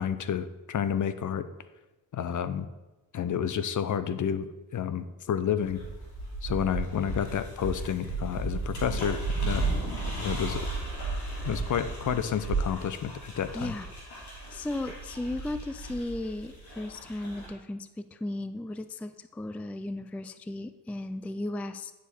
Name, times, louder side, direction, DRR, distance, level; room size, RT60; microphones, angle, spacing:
voice 1, 0.0-1.5 2.1-2.7 3.1-4.5 4.7-5.8 6.4-9.6 10.2-10.7 11.5-13.7, left 8 dB, 50° left, 13 dB, 0.6 m, -30 dB
sound 1, 5.6-17.5, right 3 dB, 75° left, 2.9 m, -34 dB
voice 2, 13.5-13.9 14.3-21.9, left 1 dB, 5° left, 12 dB, 0.3 m, -35 dB
9.8 x 5.0 x 4.2 m, 1.1 s
supercardioid pair, 60°, 40 cm